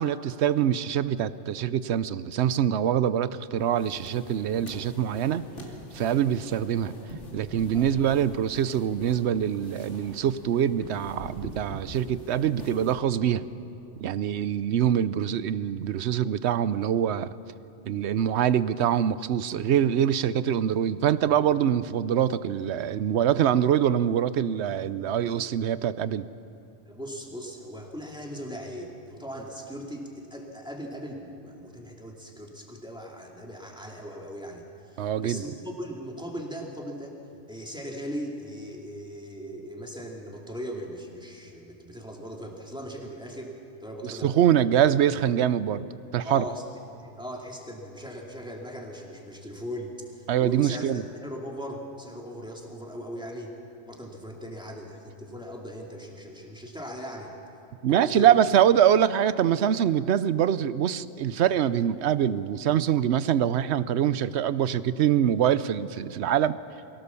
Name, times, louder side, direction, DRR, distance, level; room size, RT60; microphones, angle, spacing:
voice 1, 0.0-5.4 5.9-6.9 7.3-13.5 14.0-17.3 17.9-26.3 35.0-35.4 44.0-45.8 46.1-46.4 50.3-51.0 57.8-66.6, right 9 dB, 70° right, 16 dB, 0.9 m, -24 dB
sound 1, 3.6-12.9, left 1 dB, 80° left, 2.9 m, -44 dB
voice 2, 26.9-37.2 37.5-44.4 46.2-46.7 47.0-53.6 53.9-57.3 57.9-58.3, equal, 5° right, 0 dB, 2.4 m, -39 dB
23.5 x 17.0 x 7.0 m, 2.7 s
omnidirectional pair, 1.2 m